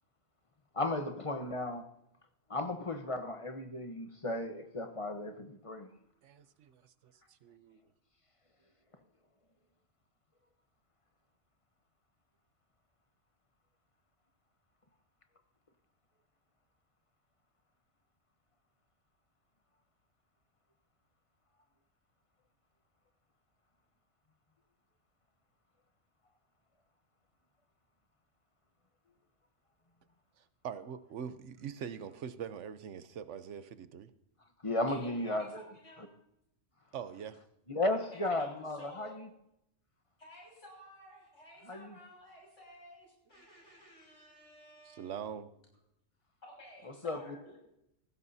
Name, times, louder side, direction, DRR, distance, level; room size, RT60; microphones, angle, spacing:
voice 1, 0.7-1.9 2.5-5.9 34.6-35.6 37.7-39.3 41.7-41.9 47.0-47.5, left 2 dB, 30° left, 1.0 m, -35 dB
voice 2, 6.2-7.8 30.4-34.1 36.9-37.4 44.8-45.5, right 8 dB, 75° right, 1.1 m, -43 dB
voice 3, 34.9-36.1 38.1-39.2 40.2-45.1 46.4-47.6, equal, 85° left, 7.0 m, -54 dB
18.5 x 15.5 x 2.7 m
omnidirectional pair, 1.2 m